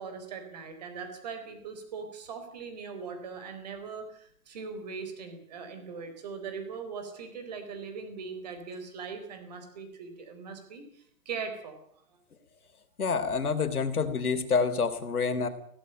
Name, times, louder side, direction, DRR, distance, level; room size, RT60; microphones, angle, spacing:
voice 1, 0.0-11.8, right 5 dB, 30° right, 8 dB, 4.1 m, -40 dB
voice 2, 13.0-15.5, left 5 dB, 80° left, 9 dB, 3.7 m, -27 dB
18.0 x 16.5 x 8.9 m, 0.66 s
hypercardioid pair, 175°, 44 cm